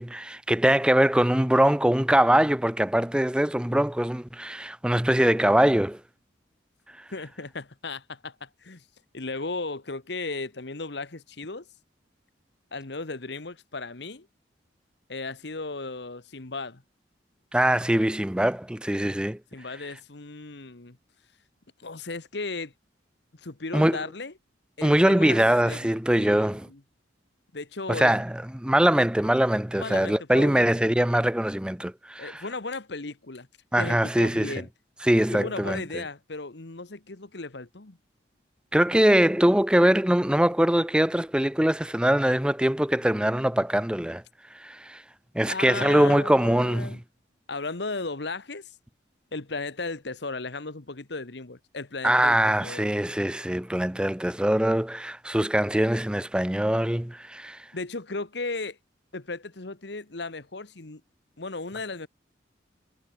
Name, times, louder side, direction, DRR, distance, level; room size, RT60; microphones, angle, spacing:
voice 1, 0.0-6.0 17.5-19.4 23.7-24.0 24.8-26.7 27.9-28.3 28.5-32.4 33.7-34.5 35.0-35.8 38.7-44.2 44.6-45.0 45.3-46.9 52.0-57.6, right 1 dB, 5° right, 0.5 m, -22 dB
voice 2, 7.1-8.8 9.1-11.7 12.7-14.3 15.1-16.8 19.5-21.0 21.8-22.7 23.3-24.3 24.8-25.4 25.6-26.8 27.5-28.1 29.7-31.0 32.2-33.5 33.8-34.7 35.3-38.0 45.5-47.0 47.5-48.7 49.3-52.9 57.7-58.8 59.1-61.0 61.4-62.1, left 3 dB, 65° left, 1.4 m, -35 dB
head